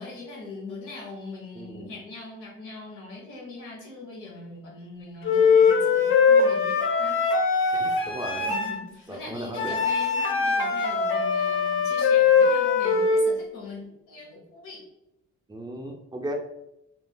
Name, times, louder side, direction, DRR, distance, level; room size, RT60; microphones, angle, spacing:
voice 1, 0.0-7.2 8.3-14.8, left 3 dB, 85° left, -2 dB, 1.2 m, -41 dB
voice 2, 1.6-1.9 7.7-8.5 9.1-9.7 15.5-16.3, right 1 dB, 15° right, 0 dB, 0.4 m, -36 dB
Wind instrument woodwind instrument, 5.2-8.8 9.6-13.3, left 5 dB, 45° left, 0.6 m, -21 dB
3.1 x 2.5 x 2.2 m, 0.83 s
cardioid pair, 90°, 30 cm